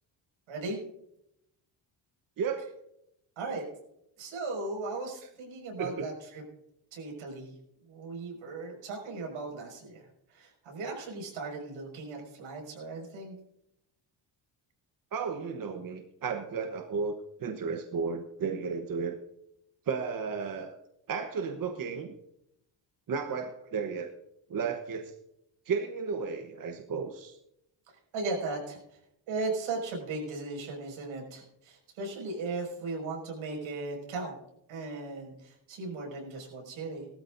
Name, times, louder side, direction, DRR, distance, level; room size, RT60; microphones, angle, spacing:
voice 1, 0.5-0.8 3.4-3.6 4.2-6.4 6.9-7.5 7.9-13.4 28.1-28.8 29.3-34.4 34.7-37.1, right 3 dB, 85° right, 0 dB, 6.0 m, -37 dB
voice 2, 15.1-19.2 19.9-20.8 21.1-22.1 23.1-24.1 24.5-25.1 25.7-27.4, right 5 dB, 45° right, 5 dB, 1.1 m, -33 dB
20.5 x 13.0 x 2.6 m, 0.81 s
cardioid pair, 130°, 47 cm